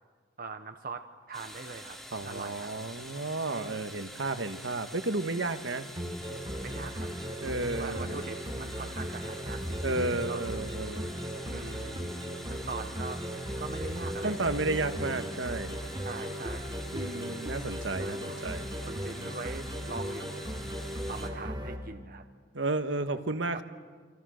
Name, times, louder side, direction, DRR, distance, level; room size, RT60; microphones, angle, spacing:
voice 1, 0.4-2.7 3.5-3.9 6.6-7.1 7.6-10.0 10.3-10.4 11.5-12.2 12.5-13.2 13.6-14.9 16.0-17.0 17.3-17.4 18.0-18.4 18.9-20.7 21.1-22.2 23.3-23.6, right 4 dB, 45° right, 7 dB, 0.9 m, -42 dB
sound 1, 1.3-21.3, equal, ahead, 2.6 m, -46 dB
voice 2, 2.1-5.9 7.4-8.3 9.8-11.1 14.2-15.7 16.9-18.7 22.5-23.6, right 2 dB, 65° right, 10 dB, 1.4 m, -32 dB
sound 2, 6.0-21.8, equal, 25° right, 3.2 m, -37 dB
29.0 x 25.5 x 6.4 m, 1.5 s
head